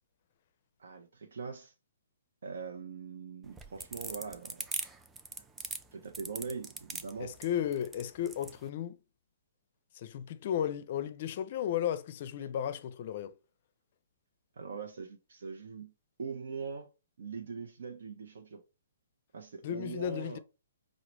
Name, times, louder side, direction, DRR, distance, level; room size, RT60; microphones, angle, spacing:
voice 1, 0.8-1.7 2.4-4.7 5.9-7.3 12.4-12.5 14.6-15.9 16.2-16.9 17.2-18.6 19.3-20.4, right 5 dB, 65° right, 0.5 m, -42 dB
sound 1, 3.4-8.6, right 4 dB, 10° right, 0.4 m, -40 dB
voice 2, 7.2-9.0 10.0-13.3 19.6-20.4, left 10 dB, 50° left, 0.4 m, -34 dB
4.7 x 2.1 x 3.0 m
figure-of-eight pair, 130°, 0 cm